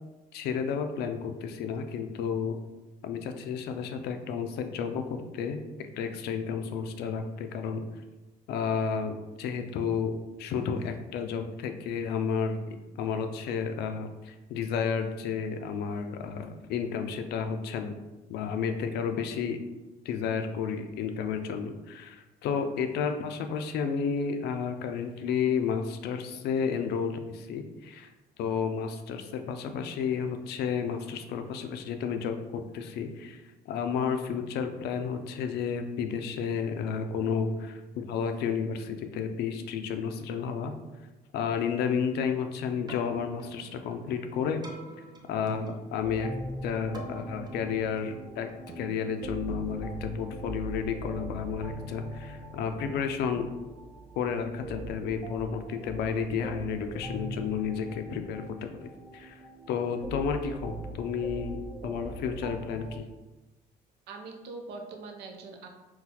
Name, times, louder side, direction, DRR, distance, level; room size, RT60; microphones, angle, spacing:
voice 1, 0.3-2.6 3.0-7.8 8.5-12.6 13.0-18.0 18.3-19.6 20.1-28.1 28.4-40.7 41.3-44.6 45.3-46.3 46.6-48.5 48.8-53.5 54.2-59.4 59.7-61.6 61.8-63.0, left 6 dB, 75° left, 7 dB, 0.4 m, -32 dB
Keyboard (musical), 42.7-50.9, right 1 dB, 25° right, 0.5 m, -47 dB
sound 1, 46.0-63.0, right 1 dB, 45° right, 1.0 m, -41 dB
voice 2, 64.1-65.7, right 3 dB, 75° right, 3 dB, 0.6 m, -42 dB
3.9 x 2.3 x 2.8 m, 1.1 s
cardioid pair, 110°, 17 cm